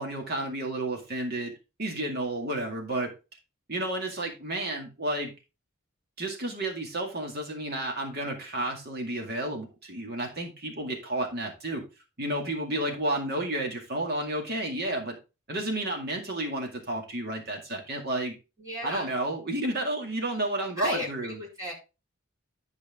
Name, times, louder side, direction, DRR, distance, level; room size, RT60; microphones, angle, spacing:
voice 1, 0.0-1.5 1.8-3.1 3.7-5.3 6.2-11.8 12.2-15.2 15.5-18.4 18.8-21.4, right 1 dB, 50° right, 2 dB, 2.1 m, -31 dB
voice 2, 18.6-19.2 20.8-21.7, left 1 dB, 15° right, -5 dB, 4.2 m, -34 dB
11.0 x 5.0 x 3.6 m, 0.29 s
head